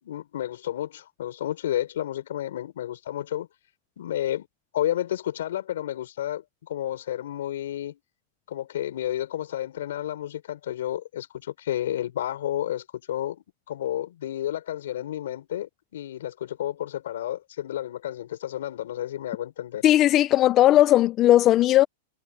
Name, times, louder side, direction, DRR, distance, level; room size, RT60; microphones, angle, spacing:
voice 1, 0.0-3.5 4.0-4.5 4.7-8.0 8.5-19.8, left 12 dB, 75° left, 5.9 m, -31 dB
voice 2, 19.8-21.9, left 13 dB, 25° left, 0.3 m, -17 dB
supercardioid pair, 170°, 0 cm